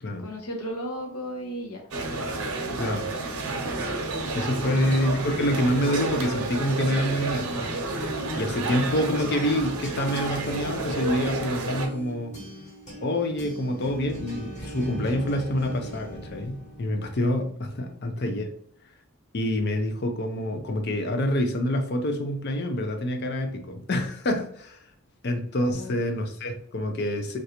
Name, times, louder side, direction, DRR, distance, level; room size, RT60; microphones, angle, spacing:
voice 1, 0.2-1.8 17.8-18.0 25.7-26.0, equal, 90° left, 1 dB, 1.0 m, -35 dB
sound 1, 1.9-11.9, right 2 dB, 85° right, 0.7 m, -30 dB
voice 2, 2.8-3.1 4.3-7.7 8.4-12.4 13.0-18.5 19.3-24.8 25.2-27.4, left 1 dB, 50° left, 4 dB, 0.5 m, -27 dB
sound 2, 8.0-17.3, right 2 dB, 30° left, 1.3 m, -40 dB
3.2 x 2.6 x 2.8 m, 0.64 s
head